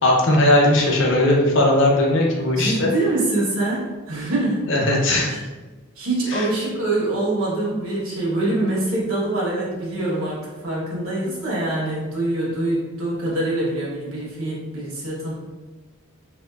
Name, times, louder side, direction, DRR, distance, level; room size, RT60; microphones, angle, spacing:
voice 1, 0.0-2.9 4.7-5.3 6.3-6.5, left 1 dB, 55° left, -1 dB, 0.6 m, -18 dB
voice 2, 2.6-4.7 5.3-5.4 6.0-15.3, right 2 dB, 75° right, -5 dB, 1.2 m, -24 dB
3.1 x 2.7 x 2.3 m, 1.2 s
head